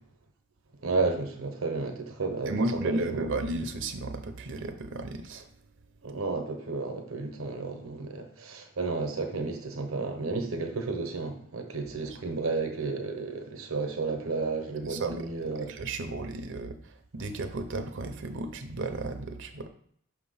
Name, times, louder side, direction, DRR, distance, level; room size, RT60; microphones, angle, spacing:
voice 1, 0.8-3.4 6.0-15.7, right 3 dB, 85° right, 5 dB, 1.0 m, -32 dB
voice 2, 2.5-5.5 12.1-12.2 14.9-16.8 17.1-19.7, right 2 dB, 65° right, 7 dB, 0.7 m, -33 dB
6.0 x 2.9 x 5.6 m, 0.62 s
head